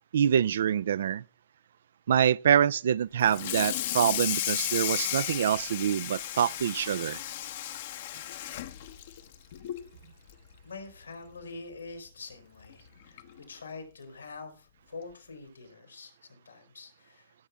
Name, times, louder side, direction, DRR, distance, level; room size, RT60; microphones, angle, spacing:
voice 1, 0.1-1.2 2.1-7.2, right 9 dB, 65° right, 0.4 m, -25 dB
Water tap faucet / Sink (filling or washing), 3.2-9.9 10.3-10.5 10.9-11.0 11.4-11.5 12.6-12.7 13.2-13.4, left 12 dB, 55° left, 0.9 m, -34 dB
voice 2, 10.6-13.2 13.5-17.3, left 3 dB, 85° left, 4.3 m, -45 dB
17.0 x 7.2 x 3.5 m
figure-of-eight pair, 110°, 0 cm